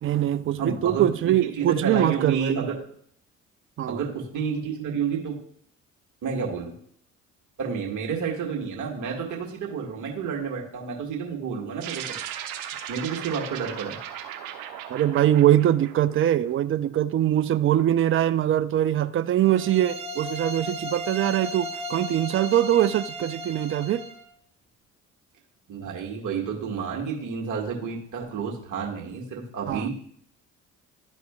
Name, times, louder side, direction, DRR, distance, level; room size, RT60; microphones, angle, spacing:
voice 1, 0.0-2.7 3.8-4.0 4.8-4.9 14.9-24.0 29.7-29.9, right 12 dB, 35° right, 0.5 m, -23 dB
voice 2, 0.6-1.1 1.6-2.8 3.8-5.4 6.2-6.7 7.6-12.0 12.9-14.0 25.7-29.9, right 6 dB, 55° right, 1.8 m, -30 dB
sound 1, 11.8-16.5, right 10 dB, 70° right, 0.8 m, -37 dB
sound 2, 19.4-24.2, equal, 15° right, 1.2 m, -36 dB
11.5 x 4.2 x 2.3 m
hypercardioid pair, 55°, 37 cm